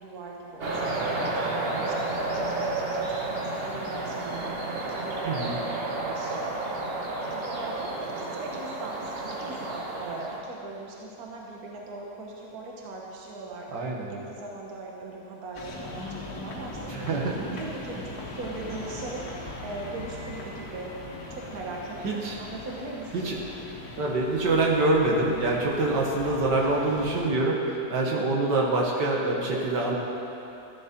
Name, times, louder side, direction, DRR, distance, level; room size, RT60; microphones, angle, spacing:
voice 1, 0.0-6.4 7.3-13.7 14.1-17.1 17.5-20.9 21.3-23.3, right 3 dB, 60° right, -2 dB, 1.7 m, -40 dB
sound 1, 0.6-10.4, right 2 dB, 40° right, 1.3 m, -31 dB
voice 2, 5.2-5.6 13.7-14.1 16.9-17.5 22.0-22.3 23.1-23.4 24.0-30.0, right 2 dB, 80° right, -3 dB, 2.1 m, -25 dB
sound 2, 15.5-27.3, left 2 dB, 65° left, 1.9 m, -40 dB
13.5 x 11.0 x 4.5 m, 2.9 s
omnidirectional pair, 1.8 m